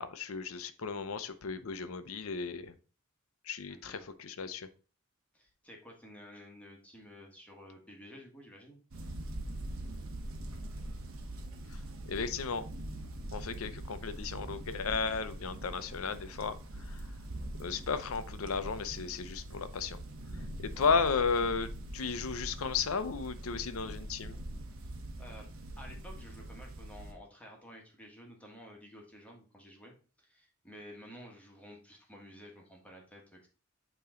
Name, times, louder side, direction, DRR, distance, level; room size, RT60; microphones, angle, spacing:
voice 1, 0.0-2.7 3.4-4.7 11.7-11.8 12.1-12.7 13.3-17.1 17.6-20.0 20.6-24.4, left 5 dB, 80° left, 12 dB, 0.6 m, -34 dB
voice 2, 3.7-4.0 5.3-8.8 20.7-20.9 24.7-25.5 25.8-29.9 30.2-33.5, equal, 5° left, 0 dB, 1.4 m, -52 dB
sound 1, 8.9-27.1, right 1 dB, 75° right, 1.1 m, -43 dB
8.5 x 3.1 x 3.7 m, 0.37 s
head